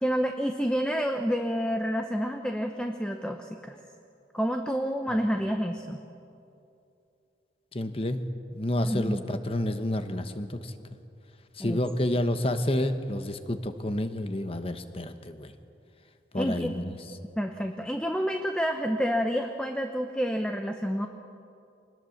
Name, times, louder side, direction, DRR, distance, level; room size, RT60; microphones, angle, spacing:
voice 1, 0.0-3.8 4.3-6.0 8.8-9.2 11.6-11.8 16.3-16.7 17.4-21.1, equal, 5° left, 5 dB, 0.9 m, -29 dB
voice 2, 7.7-8.2 8.5-10.7 11.6-15.5 16.3-16.9, left 1 dB, 30° left, 9 dB, 1.2 m, -29 dB
25.0 x 20.0 x 7.2 m, 2.6 s
head